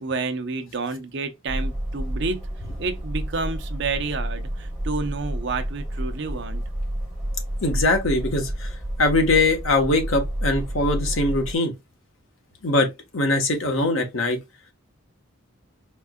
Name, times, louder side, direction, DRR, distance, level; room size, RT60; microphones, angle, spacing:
voice 1, 0.0-2.4 2.8-6.6, right 3 dB, 60° right, 0.7 m, -29 dB
sound 1, 1.5-11.6, right 1 dB, 5° right, 1.9 m, -30 dB
voice 2, 7.6-8.7 9.0-11.7 12.6-14.4, left 2 dB, 80° left, 1.2 m, -22 dB
4.5 x 3.6 x 2.2 m
head